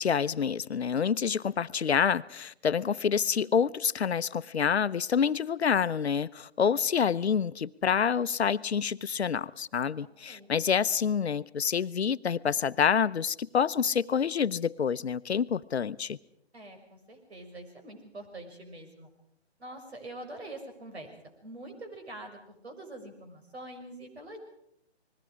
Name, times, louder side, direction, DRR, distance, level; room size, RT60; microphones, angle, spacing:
voice 1, 0.0-16.2, left 7 dB, 75° left, 0.8 m, -27 dB
voice 2, 10.0-10.5 16.5-19.1 19.6-24.4, right 1 dB, 70° right, 6.4 m, -45 dB
29.5 x 21.0 x 4.9 m
hypercardioid pair, 160°, 33 cm